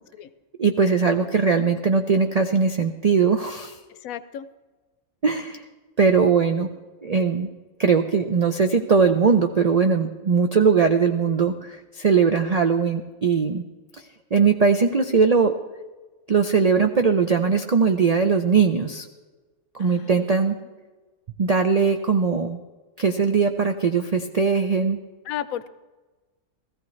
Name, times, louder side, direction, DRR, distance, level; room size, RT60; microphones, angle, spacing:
voice 1, 0.6-3.8 5.2-5.6 6.0-6.7 7.0-7.5 7.8-13.6 14.3-15.5 16.3-19.1 19.7-20.6 21.4-22.6 23.0-25.0, right 5 dB, 75° right, 6 dB, 0.3 m, -20 dB
voice 2, 3.9-4.5 19.8-20.2 25.2-25.7, left 10 dB, 80° left, 14 dB, 1.0 m, -33 dB
17.5 x 14.5 x 3.2 m, 1.3 s
omnidirectional pair, 1.5 m